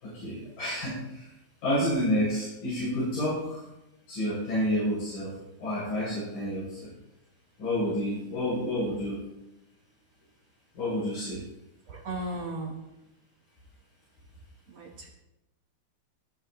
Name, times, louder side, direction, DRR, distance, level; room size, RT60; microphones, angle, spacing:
voice 1, 0.0-1.3 1.6-3.6 4.1-6.9 7.6-9.2 10.7-11.4, equal, 60° left, -9 dB, 8.1 m, -29 dB
voice 2, 11.9-12.8 14.7-15.1, right 1 dB, 55° right, 1 dB, 2.0 m, -35 dB
20.0 x 12.0 x 3.1 m, 0.91 s
omnidirectional pair, 4.5 m